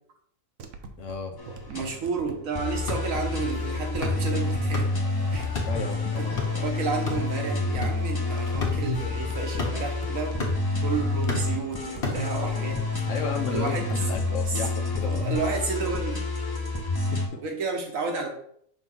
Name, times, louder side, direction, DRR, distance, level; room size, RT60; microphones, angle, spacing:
sound 1, 0.6-16.0, right 3 dB, 70° right, 1.0 m, -44 dB
voice 1, 1.0-1.3 1.8-1.9 5.7-6.4 13.1-15.3 16.9-17.4, left 5 dB, 75° left, 3 dB, 1.0 m, -34 dB
sound 2, 1.4-1.8 2.5-17.3, left 3 dB, 20° left, 0.7 m, -28 dB
voice 2, 1.7-4.9 5.3-5.5 6.2-10.3 10.8-12.8 13.5-13.9 14.5-14.6 15.0-16.2 17.4-18.3, right 4 dB, 90° right, 2 dB, 1.6 m, -31 dB
sound 3, 2.6-12.8, left 3 dB, 50° left, 1.4 m, -36 dB
5.9 x 2.9 x 5.4 m, 0.66 s
omnidirectional pair, 1.3 m